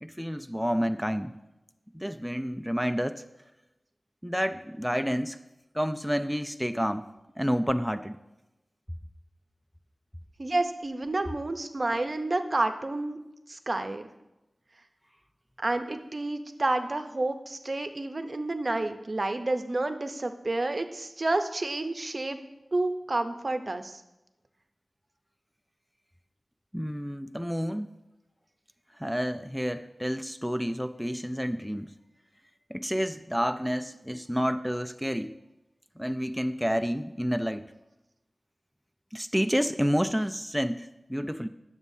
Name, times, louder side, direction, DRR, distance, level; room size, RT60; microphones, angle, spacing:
voice 1, 0.0-1.3 1.9-3.2 4.2-5.4 5.7-7.0 7.4-8.2 26.7-27.9 29.0-31.9 32.7-35.4 36.0-37.6 39.1-41.5, equal, ahead, 8 dB, 0.3 m, -29 dB
voice 2, 10.4-13.2 13.5-14.0 15.6-22.4 22.7-24.0, right 2 dB, 45° right, 8 dB, 0.7 m, -30 dB
11.0 x 7.2 x 2.7 m, 0.95 s
wide cardioid pair, 65°, 0 cm